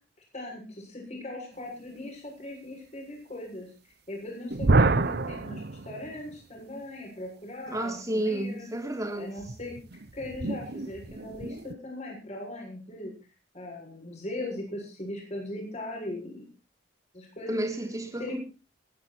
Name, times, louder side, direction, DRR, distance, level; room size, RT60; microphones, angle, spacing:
voice 1, 0.3-8.7 9.1-9.7 10.1-13.1 13.5-16.5 17.1-17.6 18.2-18.4, left 1 dB, 35° left, 7.3 m, -39 dB
sound 1, 4.5-6.4 9.4-11.7, right 3 dB, 60° right, 0.8 m, -28 dB
voice 2, 7.7-9.3 17.5-18.4, right 1 dB, 20° right, 3.9 m, -31 dB
22.5 x 10.5 x 4.5 m
head